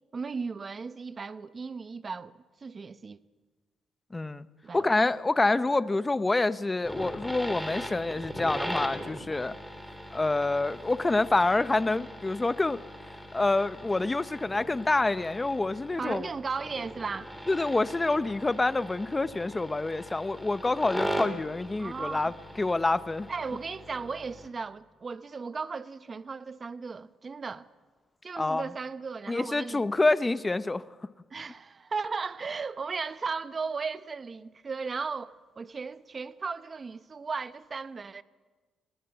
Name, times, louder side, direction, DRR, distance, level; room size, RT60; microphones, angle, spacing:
voice 1, 0.1-3.2 4.6-4.9 16.0-17.3 21.8-22.3 23.3-27.7 28.2-29.9 31.3-38.2, right 5 dB, 35° right, 0.9 m, -36 dB
voice 2, 4.1-4.5 4.7-9.5 10.1-12.8 13.3-16.3 17.5-22.3 22.6-23.3 28.4-28.6 29.3-30.8, left 2 dB, 20° left, 0.8 m, -27 dB
sound 1, 6.8-24.5, equal, ahead, 3.3 m, -40 dB
21.5 x 19.0 x 8.0 m
cardioid pair, 90°, 0 cm